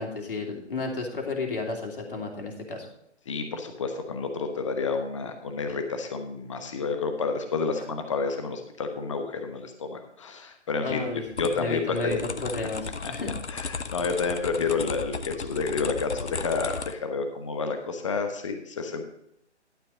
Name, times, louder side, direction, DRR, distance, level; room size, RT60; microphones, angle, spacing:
voice 1, 0.0-2.9 10.8-13.3, left 3 dB, 50° left, 1 dB, 3.0 m, -32 dB
voice 2, 3.3-11.1 11.4-12.2 13.0-13.1 13.5-19.0, left 4 dB, 25° left, 6 dB, 1.0 m, -30 dB
sound 1, 11.3-16.9, left 5 dB, 70° left, 0.8 m, -35 dB
11.5 x 7.5 x 3.9 m, 0.77 s
figure-of-eight pair, 140°, 35 cm